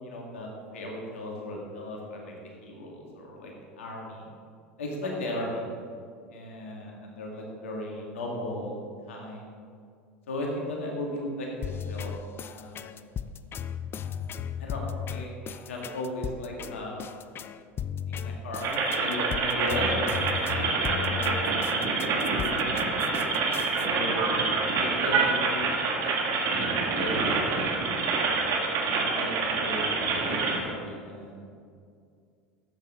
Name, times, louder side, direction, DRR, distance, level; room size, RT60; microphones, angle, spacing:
voice 1, 0.0-4.3 4.8-5.6 6.3-8.8 9.1-9.5 10.3-12.1 12.4-13.1 14.6-14.8 15.1-17.0 18.1-18.7 19.0-22.0 22.4-23.1 23.8-26.1 26.5-27.9 28.7-31.5, left 1 dB, 75° left, -1 dB, 2.1 m, -36 dB
sound 1, 11.6-23.9, left 8 dB, 35° left, 0.5 m, -36 dB
sound 2, 18.6-30.6, right 4 dB, 50° right, 1.9 m, -27 dB
13.0 x 8.3 x 3.8 m, 2.3 s
hypercardioid pair, 80°, 7 cm